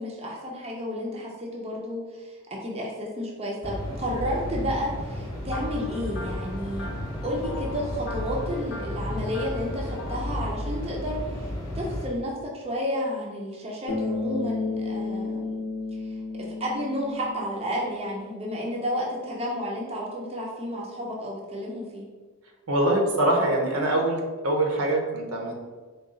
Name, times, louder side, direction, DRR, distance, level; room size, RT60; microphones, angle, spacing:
voice 1, 0.0-2.4 2.6-6.9 7.2-15.6 16.1-16.2 16.6-22.0, equal, 25° right, -3 dB, 0.5 m, -31 dB
sound 1, 3.6-12.1, left 1 dB, 15° left, 0.9 m, -33 dB
sound 2, 5.5-10.3, left 1 dB, 55° left, 0.6 m, -42 dB
Bass guitar, 13.9-18.3, left 3 dB, 90° left, 0.7 m, -32 dB
voice 2, 22.7-25.5, right 1 dB, 70° right, 1 dB, 0.7 m, -24 dB
3.8 x 2.3 x 3.7 m, 1.4 s
head